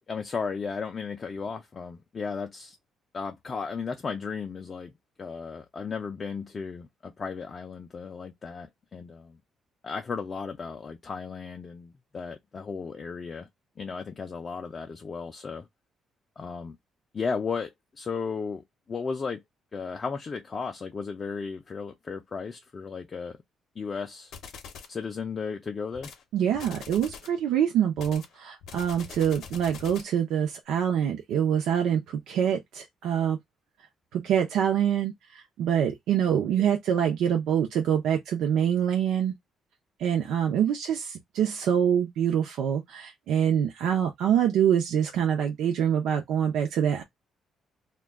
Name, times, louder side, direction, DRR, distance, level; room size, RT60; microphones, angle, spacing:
voice 1, 0.1-2.8 3.1-4.9 5.2-9.4 9.8-13.5 13.8-15.7 16.4-16.8 17.1-18.6 18.9-19.4 19.7-23.4 23.8-24.3 24.9-26.1, left 5 dB, 25° left, 0.3 m, -35 dB
sound 1, 24.3-25.0 25.9-26.2 26.5-27.4 28.0-30.2, left 6 dB, 65° left, 0.6 m, -43 dB
voice 2, 26.3-33.4 34.1-39.3 40.0-47.0, right 9 dB, 80° right, 0.5 m, -25 dB
2.2 x 2.2 x 3.4 m
cardioid pair, 170°, 0 cm